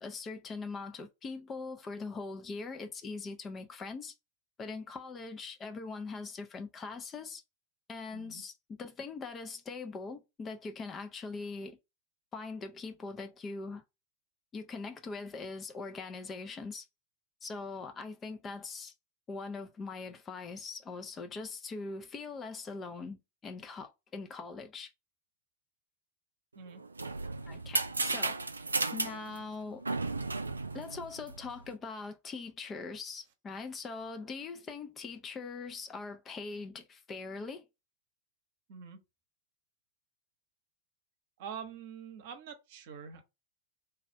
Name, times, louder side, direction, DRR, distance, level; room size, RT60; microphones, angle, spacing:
voice 1, 0.0-4.1 4.6-7.4 7.9-11.8 12.3-13.8 14.5-16.9 17.4-18.9 19.3-24.9 27.5-28.4 28.9-29.8 30.7-37.7, left 4 dB, 20° left, 0.5 m, -42 dB
voice 2, 8.1-8.4 26.5-26.8 38.7-39.0 41.4-43.2, right 7 dB, 50° right, 0.8 m, -45 dB
sound 1, 26.7-31.7, right 3 dB, 80° right, 0.3 m, -34 dB
3.4 x 2.4 x 4.3 m
figure-of-eight pair, 90°, 0 cm